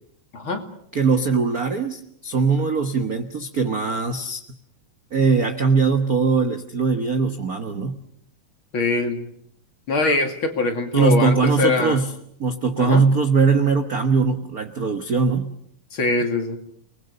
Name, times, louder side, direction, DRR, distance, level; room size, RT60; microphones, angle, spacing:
voice 1, 0.3-0.6 8.7-9.3 9.9-12.0 12.8-13.0 15.9-16.6, left 3 dB, 45° left, 5 dB, 3.0 m, -22 dB
voice 2, 0.9-4.4 5.1-8.0 10.9-12.1 12.4-15.5, right 4 dB, 55° right, 7 dB, 1.0 m, -21 dB
30.0 x 20.5 x 6.6 m, 0.69 s
omnidirectional pair, 3.5 m